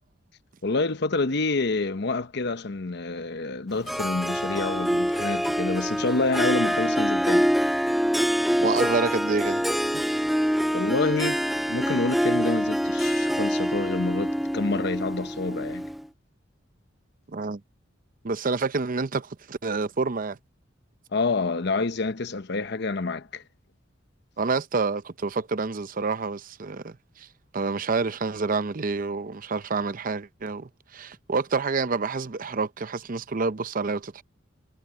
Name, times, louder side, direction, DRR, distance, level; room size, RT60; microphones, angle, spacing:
voice 1, 0.6-7.5 10.7-15.9 21.1-23.4, left 3 dB, 60° left, 0.9 m, -28 dB
Harp, 3.9-16.1, equal, ahead, 0.3 m, -25 dB
voice 2, 8.6-9.6 9.9-10.0 17.3-17.6 18.2-20.4 24.4-27.3 27.5-34.2, right 4 dB, 45° right, 0.7 m, -28 dB
head